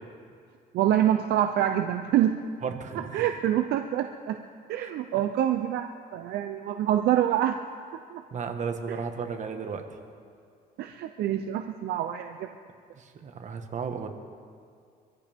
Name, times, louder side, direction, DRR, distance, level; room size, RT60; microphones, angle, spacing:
voice 1, 0.7-2.4 3.1-4.4 4.7-7.6 8.1-8.2 10.8-12.5, right 11 dB, 75° right, 6 dB, 0.7 m, -26 dB
voice 2, 2.6-3.3 4.8-4.9 8.3-9.9 13.0-14.1, right 6 dB, 45° right, 5 dB, 1.5 m, -34 dB
25.0 x 14.5 x 3.6 m, 2.2 s
cardioid pair, 110°, 17 cm